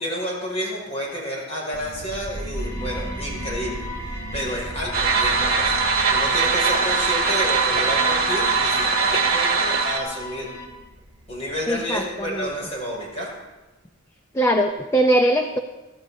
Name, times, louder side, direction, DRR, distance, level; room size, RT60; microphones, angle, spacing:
voice 1, 0.0-3.9 4.1-10.5 11.3-13.3, equal, 30° left, -3 dB, 5.8 m, -30 dB
sound 1, 1.7-13.1, equal, 25° right, 2.0 m, -37 dB
sound 2, 2.5-10.7, left 2 dB, 85° left, 3.0 m, -39 dB
sound 3, 4.9-10.0, right 4 dB, 50° right, 1.9 m, -21 dB
voice 2, 11.7-12.5 14.3-15.6, right 1 dB, 15° left, 5 dB, 0.6 m, -21 dB
23.0 x 14.0 x 2.7 m, 1.1 s
head